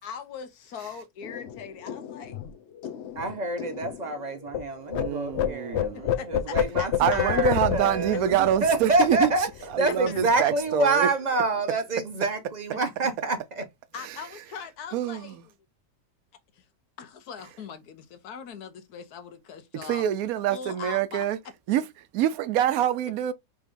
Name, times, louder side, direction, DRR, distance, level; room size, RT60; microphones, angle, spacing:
voice 1, 0.0-2.4 2.8-2.9 3.2-3.3 5.9-6.9 9.9-10.5 12.7-12.8 13.9-15.4 16.5-16.7 17.0-20.0 20.5-21.2, left 7 dB, 85° left, 1.4 m, -41 dB
sound 1, 1.2-4.6 4.9-9.9 10.2-10.4 10.7-11.2, left 10 dB, 55° left, 0.8 m, -30 dB
voice 2, 3.2-9.5 9.8-13.6, right 2 dB, 35° right, 0.8 m, -27 dB
voice 3, 5.0-6.0 7.0-9.3 9.7-11.1 14.0-14.2 14.9-15.4 19.8-21.4 21.7-23.3, right 11 dB, 75° right, 1.1 m, -26 dB
4.8 x 3.8 x 2.6 m
omnidirectional pair, 1.6 m